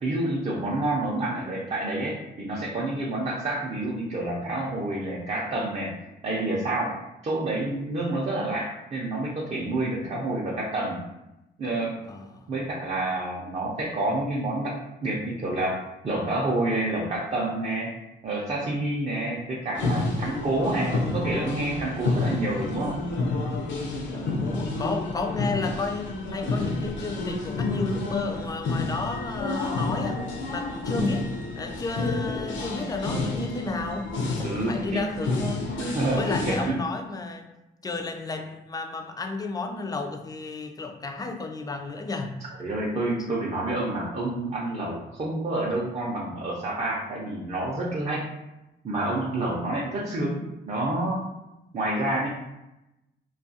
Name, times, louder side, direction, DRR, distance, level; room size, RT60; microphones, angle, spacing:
voice 1, 0.0-5.9 6.2-6.9 7.2-11.0 11.6-12.0 12.5-15.8 16.0-17.9 18.2-23.0 34.4-35.0 35.8-36.8 42.6-48.2 48.8-50.4 50.7-51.3 51.7-52.3, right 2 dB, 35° right, -4 dB, 0.5 m, -28 dB
voice 2, 12.1-12.5 24.1-30.2 30.5-31.3 31.6-35.8 36.0-37.5 37.8-42.4, left 3 dB, 20° left, 4 dB, 0.3 m, -32 dB
sound 1, 19.7-36.7, left 2 dB, 65° left, 0.6 m, -29 dB
2.3 x 2.3 x 2.6 m, 0.92 s
cardioid pair, 90°, 20 cm